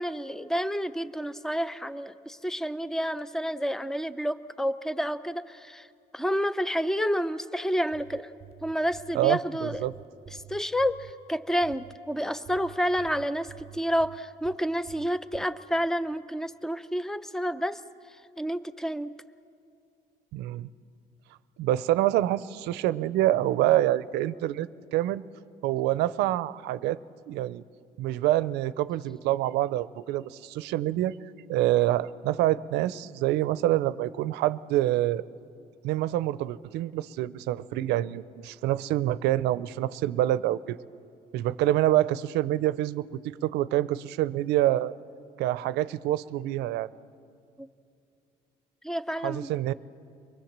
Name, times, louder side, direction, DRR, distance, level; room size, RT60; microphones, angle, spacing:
voice 1, 0.0-5.9 6.1-8.3 8.6-9.9 10.3-17.8 18.4-19.1 47.6-47.7 48.8-49.5, equal, 5° left, 14 dB, 0.6 m, -29 dB
sound 1, 7.8-9.2 9.7-11.1 11.6-12.0 12.5-14.6 14.9-15.5, right 12 dB, 35° right, 0.8 m, -49 dB
voice 2, 9.1-9.9 20.3-20.7 21.6-25.2 25.6-27.0 27.3-27.6 28.0-31.1 31.5-35.2 35.8-40.8 41.3-44.9 45.4-46.9 49.2-49.7, right 14 dB, 90° right, 17 dB, 0.6 m, -26 dB
24.0 x 20.5 x 7.4 m, 2.5 s
cardioid pair, 110°, 17 cm